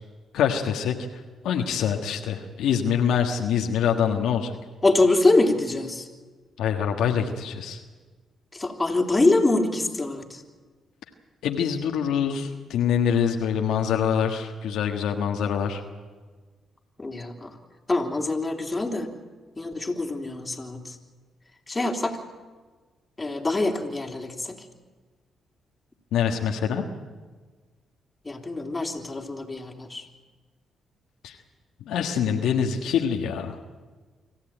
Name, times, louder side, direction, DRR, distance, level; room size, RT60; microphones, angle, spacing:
voice 1, 0.3-4.6 6.6-7.8 11.4-15.8 26.1-26.8 31.2-31.4 31.9-33.6, left 8 dB, 80° left, 3 dB, 1.5 m, -25 dB
voice 2, 4.8-6.1 8.5-10.4 17.0-17.5 17.9-19.1 19.6-20.9 21.7-22.2 23.2-24.5 28.2-30.0, left 2 dB, 25° left, 2 dB, 3.4 m, -24 dB
25.5 x 14.5 x 9.0 m, 1.4 s
supercardioid pair, 65°, 0 cm